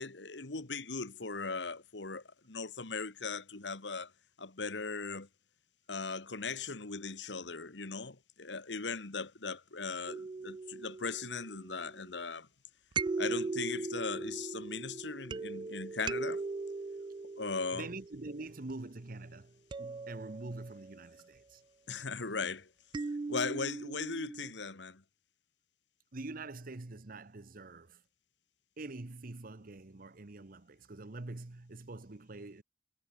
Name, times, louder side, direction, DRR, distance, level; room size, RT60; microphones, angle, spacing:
voice 1, 0.0-4.1 4.4-5.3 5.9-12.5 13.2-16.4 17.4-17.9 21.9-22.7 23.3-25.0, left 4 dB, 80° left, 1.7 m, -38 dB
sound 1, 10.1-12.0 12.9-18.7 19.7-21.1 22.9-24.5, right 3 dB, 25° right, 0.3 m, -39 dB
voice 2, 17.7-21.6 21.9-22.1 26.1-28.0 28.8-32.6, right 2 dB, 55° right, 1.1 m, -45 dB
head